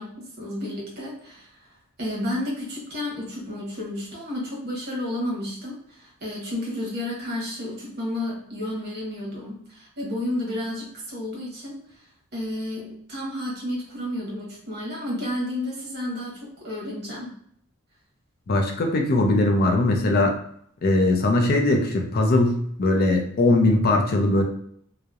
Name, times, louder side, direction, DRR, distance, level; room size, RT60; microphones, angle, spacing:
voice 1, 0.0-1.5 2.0-11.8 12.3-17.3, left 1 dB, 55° right, -3 dB, 0.9 m, -31 dB
voice 2, 18.5-20.3 20.8-24.4, left 2 dB, 50° left, 3 dB, 0.4 m, -20 dB
2.7 x 2.0 x 2.3 m, 0.65 s
head